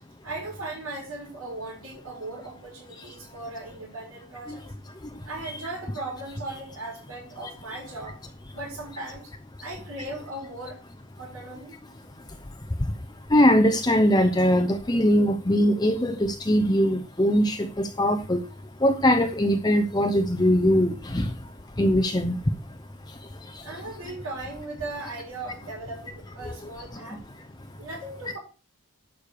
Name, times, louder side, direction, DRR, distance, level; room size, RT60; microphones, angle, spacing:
voice 1, 0.2-4.6 5.2-8.2 8.5-9.3 9.6-10.8 11.2-11.8 23.6-27.2 27.8-28.4, right 2 dB, 70° right, 6.4 m, -38 dB
voice 2, 13.3-18.4 18.8-21.3 21.8-22.4, equal, 20° left, 0.7 m, -21 dB
11.5 x 5.1 x 6.7 m
head